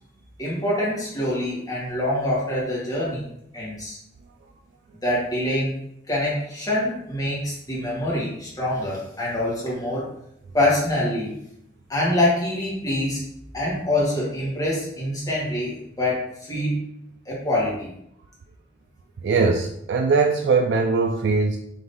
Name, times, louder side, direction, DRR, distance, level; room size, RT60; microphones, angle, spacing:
voice 1, 0.4-4.0 5.0-5.7 6.1-10.0 10.5-11.4 11.9-13.2 13.5-16.8 17.2-17.9, left 1 dB, 20° left, -6 dB, 1.4 m, -25 dB
voice 2, 19.2-21.6, right 4 dB, 70° right, 3 dB, 0.3 m, -20 dB
4.0 x 3.0 x 3.5 m, 0.75 s
head